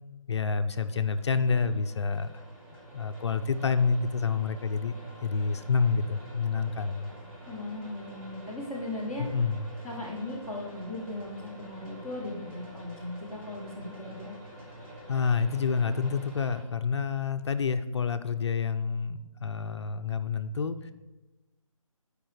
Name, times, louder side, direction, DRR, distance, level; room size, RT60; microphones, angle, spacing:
voice 1, 0.3-2.3 2.7-4.9 5.2-7.1 9.2-9.6 15.1-20.9, left 5 dB, 55° left, 10 dB, 0.4 m, -28 dB
sound 1, 0.7-16.6, right 1 dB, 25° right, 2.0 m, -47 dB
voice 2, 7.5-9.3 9.8-14.4, left 2 dB, 5° right, -8 dB, 0.6 m, -38 dB
13.5 x 4.9 x 3.2 m, 1.1 s
figure-of-eight pair, 155°, 18 cm